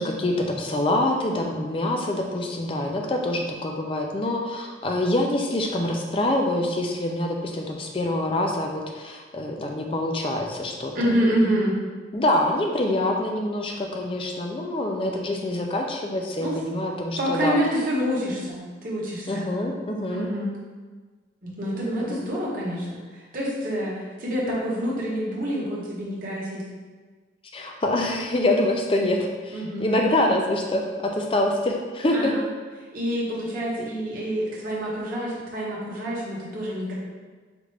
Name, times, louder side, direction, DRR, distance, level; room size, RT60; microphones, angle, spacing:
voice 1, 0.0-10.9 12.1-17.6 19.3-20.3 21.7-22.2 27.5-32.3, left 1 dB, 30° left, 2 dB, 0.4 m, -25 dB
voice 2, 10.9-11.8 16.4-16.5 17.2-19.4 20.1-20.5 21.4-22.8 23.3-26.6 29.5-30.0 32.1-32.4 32.9-36.9, equal, 45° right, -6 dB, 1.0 m, -27 dB
5.1 x 2.5 x 3.2 m, 1.4 s
head